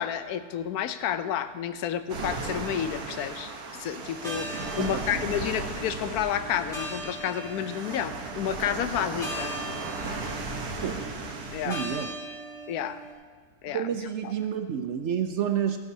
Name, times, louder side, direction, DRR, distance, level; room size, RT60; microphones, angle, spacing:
voice 1, 0.0-9.6 11.5-11.8 12.7-13.0 13.6-13.9 14.2-14.3, left 9 dB, 80° left, 11 dB, 1.1 m, -30 dB
sound 1, 2.1-12.0, right 3 dB, 85° right, 1.6 m, -36 dB
sound 2, 4.1-13.1, right 1 dB, ahead, 2.8 m, -40 dB
voice 2, 11.6-12.1 13.7-15.8, right 8 dB, 65° right, 7 dB, 0.8 m, -29 dB
14.0 x 11.5 x 2.7 m, 1.5 s
omnidirectional pair, 1.6 m